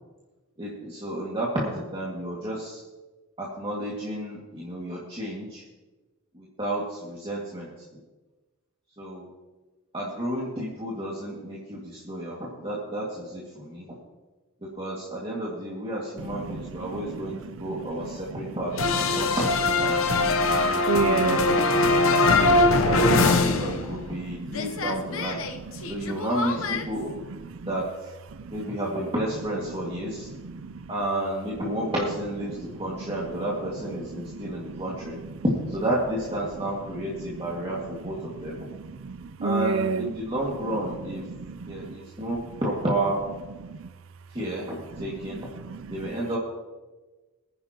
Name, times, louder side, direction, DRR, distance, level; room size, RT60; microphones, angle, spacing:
voice 1, 0.6-2.8 3.4-5.6 6.3-7.7 9.0-9.3 9.9-13.9 14.8-17.3 17.6-20.0 20.7-21.5 22.2-25.4 25.9-27.1 27.7-28.1 28.5-30.3 30.9-35.2 35.7-38.6 39.4-41.2 41.7-43.2 44.3-45.5 45.9-46.4, right 1 dB, 25° right, 2.1 m, -31 dB
voice 2, 16.4-17.8 18.1-18.4 20.3-22.3 22.8-22.9 23.3-23.4 23.7-24.0 24.4-24.6 25.8-26.2 27.3-27.7 28.4-28.6 30.0-30.1 30.4-30.9 34.1-34.8 37.2-37.4 38.3-40.2 41.3-41.9 43.6-43.9 45.6-46.1, right 4 dB, 65° right, 0.5 m, -32 dB
sound 1, 18.8-24.2 24.5-26.8, left 2 dB, 65° left, 0.9 m, -22 dB
23.0 x 9.9 x 3.0 m
head